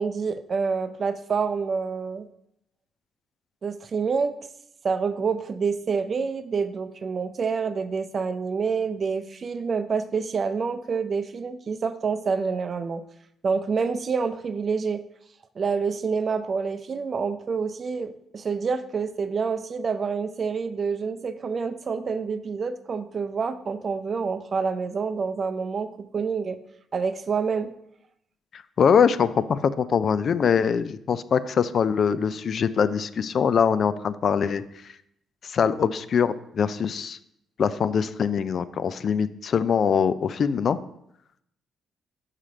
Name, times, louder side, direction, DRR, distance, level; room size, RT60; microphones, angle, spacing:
voice 1, 0.0-2.3 3.6-4.4 4.8-13.0 13.4-15.0 15.6-26.6 26.9-27.7, right 5 dB, 45° right, 11 dB, 0.5 m, -27 dB
voice 2, 28.5-34.6 35.4-37.2 37.6-40.8, left 7 dB, 55° left, 14 dB, 0.4 m, -23 dB
5.7 x 4.9 x 5.1 m, 0.76 s
cardioid pair, 90°, 0 cm